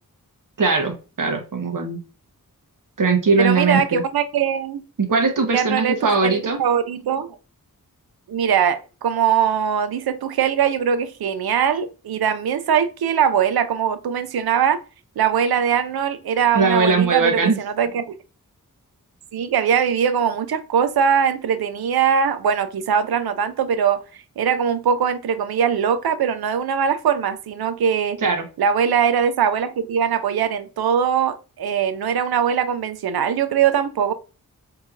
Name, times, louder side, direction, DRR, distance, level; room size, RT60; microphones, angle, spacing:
voice 1, 0.6-2.0 3.0-4.0 5.0-6.6 16.5-17.6 28.2-28.4, right 4 dB, 60° right, 1.0 m, -20 dB
voice 2, 3.4-4.8 5.5-7.4 8.3-14.8 15.2-18.1 19.3-24.0 24.4-28.2 28.6-34.1, right 7 dB, 90° right, 0.5 m, -21 dB
4.4 x 2.9 x 2.4 m
wide cardioid pair, 60°, 36 cm